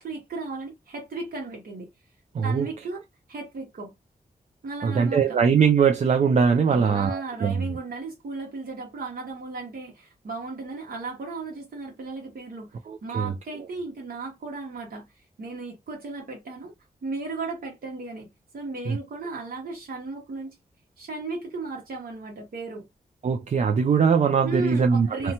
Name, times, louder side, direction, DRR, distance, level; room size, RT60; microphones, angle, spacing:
voice 1, 0.0-1.9 2.4-3.0 3.3-3.9 4.6-5.4 6.7-12.7 13.0-16.7 17.0-20.5 21.0-22.9 24.4-25.3, right 3 dB, 65° right, 1.0 m, -35 dB
voice 2, 2.3-2.7 4.8-7.8 12.9-13.3 18.9-19.0 23.2-25.3, right 6 dB, 45° right, 0.4 m, -21 dB
2.8 x 2.2 x 2.8 m
wide cardioid pair, 120°, 16 cm